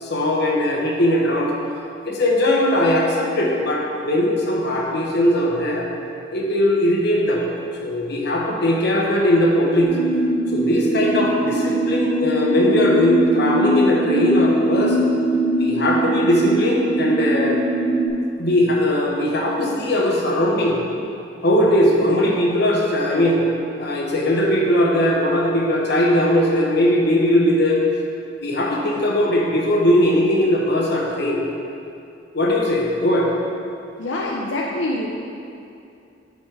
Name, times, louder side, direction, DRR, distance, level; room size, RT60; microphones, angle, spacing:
voice 1, 0.0-1.5 2.0-5.9 6.3-7.4 7.8-10.0 10.5-15.0 15.6-17.6 18.4-20.8 21.4-23.4 23.8-27.8 28.4-31.4 32.3-33.3, left 1 dB, 60° left, -1 dB, 1.1 m, -19 dB
sound 1, 9.8-18.1, right 1 dB, 80° right, 1.0 m, -21 dB
voice 2, 34.0-35.1, left 1 dB, 90° left, -2 dB, 0.6 m, -25 dB
8.3 x 4.2 x 4.7 m, 2.6 s
head